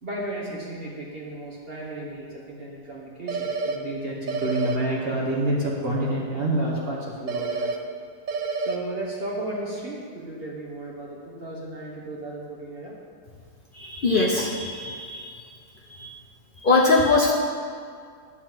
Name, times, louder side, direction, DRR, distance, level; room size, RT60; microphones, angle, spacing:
voice 1, 0.0-8.0 8.6-12.9, right 1 dB, 35° right, -4 dB, 1.3 m, -31 dB
sound 1, 3.3-3.8 4.3-4.8 7.3-7.8 8.3-8.8, right 4 dB, 60° right, 0.9 m, -28 dB
voice 2, 13.7-15.4 15.9-16.1 16.6-17.3, left 3 dB, 70° left, -2 dB, 0.5 m, -22 dB
9.9 x 4.2 x 7.4 m, 2.1 s
omnidirectional pair, 1.9 m